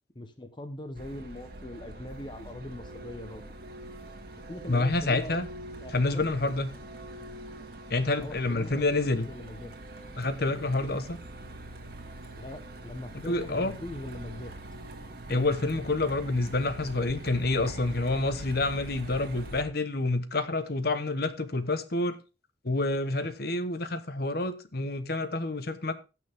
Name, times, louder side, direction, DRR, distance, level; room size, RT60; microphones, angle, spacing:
voice 1, 0.1-3.5 4.5-5.4 5.8-6.3 8.2-8.8 9.1-9.7 12.3-14.5, left 1 dB, 25° left, 1.0 m, -41 dB
Truck, 1.0-19.6, right 1 dB, 55° right, 2.0 m, -44 dB
voice 2, 4.7-5.5 5.9-6.7 7.9-9.3 10.2-11.2 13.3-13.8 15.3-22.2 22.6-25.9, left 2 dB, 55° left, 1.1 m, -28 dB
16.5 x 6.2 x 3.5 m
head